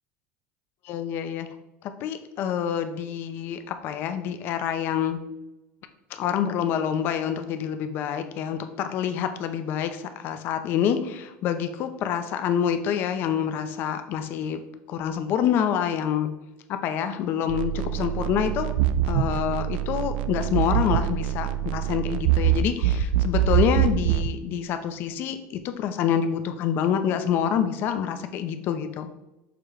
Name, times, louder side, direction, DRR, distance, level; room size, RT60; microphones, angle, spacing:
voice 1, 0.8-1.5 2.0-5.2 6.1-14.6 14.9-16.3 16.7-18.7 19.0-29.1, left 8 dB, 40° left, 8 dB, 0.6 m, -27 dB
sound 1, 17.5-24.3, right 10 dB, 80° right, 0.4 m, -24 dB
6.7 x 3.0 x 4.9 m, 0.96 s
cardioid pair, 170°, 5 cm